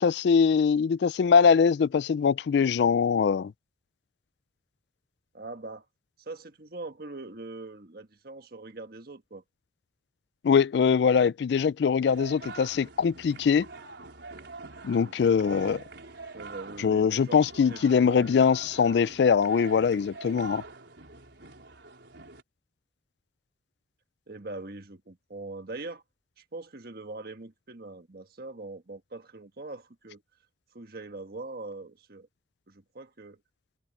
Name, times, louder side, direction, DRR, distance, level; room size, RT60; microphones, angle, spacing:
voice 1, 0.0-3.5 10.4-13.7 14.8-15.8 16.8-20.6, left 6 dB, 65° left, 0.3 m, -22 dB
voice 2, 5.3-5.8 6.2-9.4 15.0-15.2 16.3-17.4 17.7-18.4 24.3-26.0 26.4-30.2 30.7-32.3 32.7-33.4, right 2 dB, 55° right, 1.5 m, -42 dB
sound 1, 12.1-22.4, right 3 dB, 70° right, 4.6 m, -44 dB
head